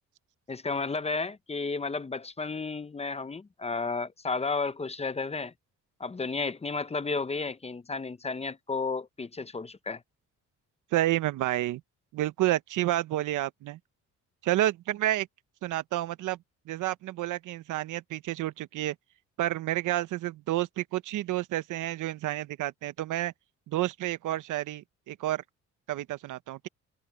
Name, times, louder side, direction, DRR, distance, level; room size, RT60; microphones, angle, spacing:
voice 1, 0.5-5.5 6.0-10.0, left 4 dB, 20° left, 0.8 m, -32 dB
voice 2, 10.9-11.8 12.1-13.8 14.4-15.3 15.6-16.4 16.7-18.9 19.4-23.3 23.7-25.4 25.9-26.7, right 15 dB, 85° right, 1.0 m, -30 dB
cardioid pair, 90°, 30 cm